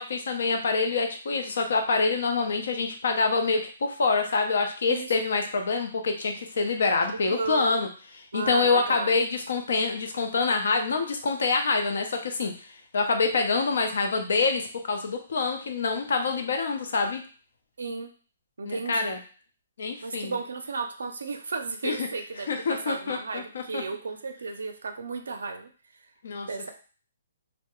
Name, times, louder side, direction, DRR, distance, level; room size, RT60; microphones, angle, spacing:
voice 1, 0.0-7.9 8.3-12.5 12.9-17.2 18.6-19.2 19.8-20.4 21.8-22.1 22.5-23.8 26.2-26.7, left 4 dB, 70° left, 4 dB, 0.6 m, -26 dB
voice 2, 7.3-7.9 8.3-9.2 17.8-18.1 18.6-19.1 20.0-25.7 26.5-26.7, right 4 dB, 85° right, 4 dB, 0.4 m, -34 dB
2.3 x 2.0 x 2.9 m, 0.39 s
hypercardioid pair, 155°, 0 cm